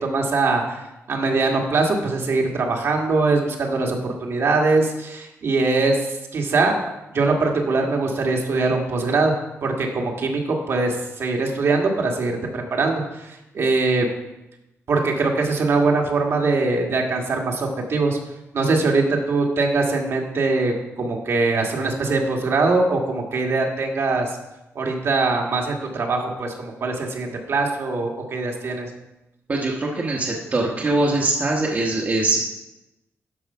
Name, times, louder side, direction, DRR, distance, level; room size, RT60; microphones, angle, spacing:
voice 1, 0.0-0.8 1.1-6.8 7.1-9.3 9.6-14.1 14.9-18.2 18.5-24.4 24.7-28.9, right 3 dB, 55° right, 1 dB, 1.7 m, -22 dB
voice 2, 29.5-32.4, right 2 dB, 35° right, -2 dB, 1.2 m, -22 dB
12.0 x 4.9 x 5.6 m, 0.95 s
wide cardioid pair, 135°, 5 cm